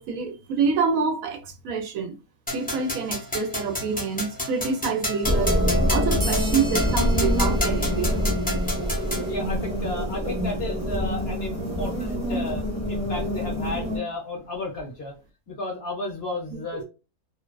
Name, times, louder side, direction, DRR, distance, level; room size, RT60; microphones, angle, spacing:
voice 1, 0.0-2.1 2.5-5.6 5.9-8.2 16.5-16.8, right 5 dB, 75° right, 0.9 m, -27 dB
sound 1, 2.5-9.3, left 1 dB, 15° left, 0.3 m, -30 dB
sound 2, 5.2-14.0, equal, 5° right, 0.7 m, -25 dB
sound 3, 6.2-9.2, right 1 dB, 40° right, 0.5 m, -40 dB
voice 2, 9.3-15.1 15.5-16.8, left 2 dB, 50° left, 0.9 m, -33 dB
2.6 x 2.2 x 2.2 m
omnidirectional pair, 1.5 m